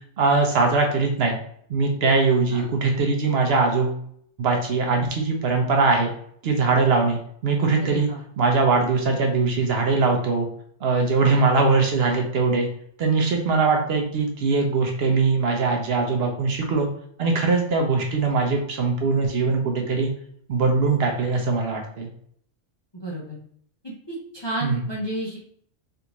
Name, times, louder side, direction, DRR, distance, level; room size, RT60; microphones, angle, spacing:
voice 1, 0.2-1.4 1.7-4.0 4.4-6.1 6.4-8.1 8.4-10.5 10.8-12.7 13.0-16.9 17.2-20.1 20.5-22.1 24.6-24.8, right 4 dB, 65° right, 2 dB, 0.8 m, -21 dB
voice 2, 7.8-8.2 22.9-23.4 23.8-25.4, right 1 dB, 30° left, -5 dB, 0.5 m, -32 dB
3.4 x 2.6 x 2.9 m, 0.64 s
omnidirectional pair, 1.2 m